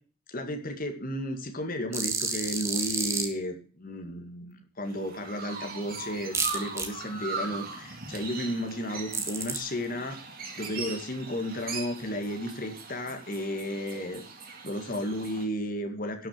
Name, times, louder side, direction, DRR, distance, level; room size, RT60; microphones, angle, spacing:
voice 1, 0.3-10.2 10.6-14.2 14.6-16.3, equal, 40° left, 5 dB, 2.0 m, -33 dB
sound 1, 1.9-3.3 6.3-6.9 9.1-9.6, right 4 dB, 10° right, 1.4 m, -30 dB
Chirp tweet, 4.9-15.4, right 4 dB, 40° right, 2.2 m, -40 dB
12.0 x 6.3 x 6.7 m, 0.43 s
head